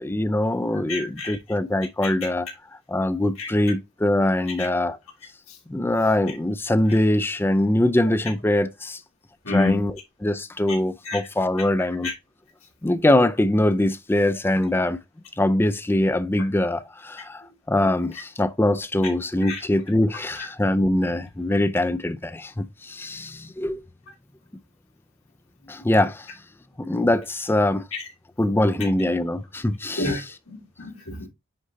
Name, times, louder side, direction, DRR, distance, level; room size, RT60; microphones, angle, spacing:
voice 1, 0.0-2.5 2.9-5.0 5.7-9.0 9.5-12.1 12.8-15.0 15.4-23.8 25.7-26.3 26.8-27.9 28.4-30.3, left 1 dB, 10° left, 0.3 m, -23 dB
voice 2, 0.9-1.4 2.0-2.1 3.4-3.5 4.6-4.7 9.4-9.8 11.0-11.3 12.0-12.1 19.4-19.6 20.4-20.5 27.9-28.0 30.0-30.2 30.5-31.3, left 2 dB, 80° left, 2.7 m, -28 dB
9.7 x 3.8 x 2.7 m
head